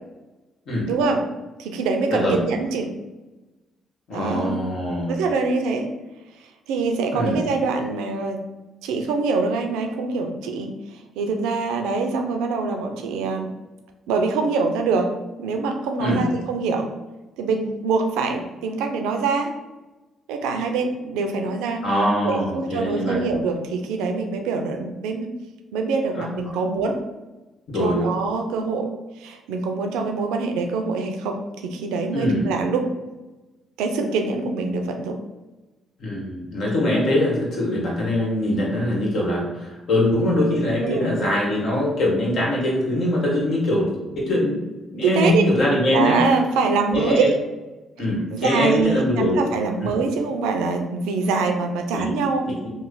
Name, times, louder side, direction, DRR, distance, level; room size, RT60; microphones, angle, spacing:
voice 1, 0.9-1.2 1.6-2.9 4.1-4.6 5.1-5.9 6.7-8.4 8.8-13.5 14.1-15.1 15.4-16.9 17.4-19.5 20.3-21.9 22.2-25.3 25.7-27.0 27.8-28.9 29.2-32.9 33.8-35.2 40.8-41.2 45.0-45.5 45.9-47.4 48.3-52.5, right 4 dB, 85° right, 4 dB, 0.4 m, -24 dB
voice 2, 4.1-5.1 7.1-7.4 16.0-16.2 21.8-23.2 26.1-26.2 27.7-28.1 32.1-32.5 36.0-44.7 44.9-46.2 46.9-47.3 48.0-49.4 49.8-49.9 51.9-52.1 52.5-52.7, left 1 dB, 65° left, -3 dB, 1.3 m, -22 dB
3.1 x 2.0 x 3.8 m, 1.1 s
supercardioid pair, 55°, 0 cm